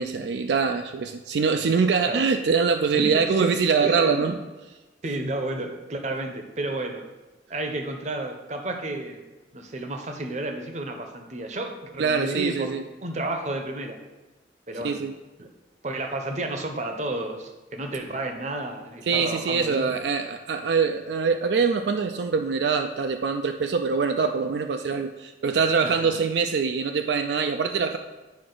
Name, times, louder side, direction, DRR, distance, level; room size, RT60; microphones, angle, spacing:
voice 1, 0.0-4.3 12.0-12.8 14.8-15.1 19.1-28.0, right 5 dB, 70° right, 6 dB, 0.4 m, -24 dB
voice 2, 2.9-4.3 5.0-7.0 7.5-9.2 9.5-14.0 14.7-15.1 15.4-15.5 15.8-19.9 25.8-26.2, right 2 dB, 40° right, 5 dB, 0.8 m, -32 dB
9.5 x 4.8 x 3.9 m, 1.2 s
head